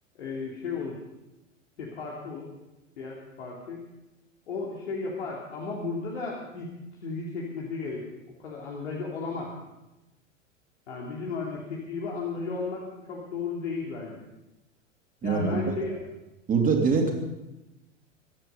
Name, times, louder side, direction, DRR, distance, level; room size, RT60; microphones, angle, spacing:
voice 1, 0.2-1.0 1.8-2.5 3.0-3.8 4.5-6.7 7.0-8.0 8.4-9.5 10.9-14.2 15.2-16.0 17.0-17.1, left 4 dB, 60° left, -3 dB, 3.1 m, -34 dB
voice 2, 15.2-15.7 16.5-17.1, right 4 dB, 20° right, 2 dB, 3.2 m, -23 dB
23.0 x 10.0 x 5.5 m, 0.99 s
figure-of-eight pair, 90°, 38 cm